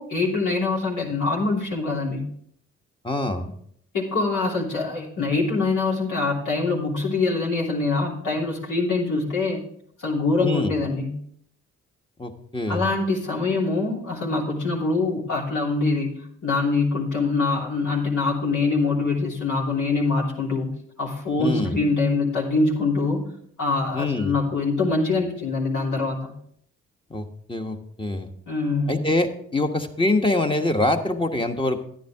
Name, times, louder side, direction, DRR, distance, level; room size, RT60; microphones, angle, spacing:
voice 1, 0.0-2.3 3.9-9.6 10.0-11.2 12.7-20.7 21.0-23.3 23.6-26.3 28.5-29.0, left 3 dB, 70° left, -3 dB, 3.1 m, -24 dB
voice 2, 3.0-3.5 10.4-10.8 12.2-12.8 21.4-21.8 23.9-24.3 27.1-28.3 28.9-31.8, left 2 dB, 15° left, 5 dB, 1.3 m, -25 dB
10.0 x 9.9 x 3.5 m, 0.66 s
supercardioid pair, 50°, 31 cm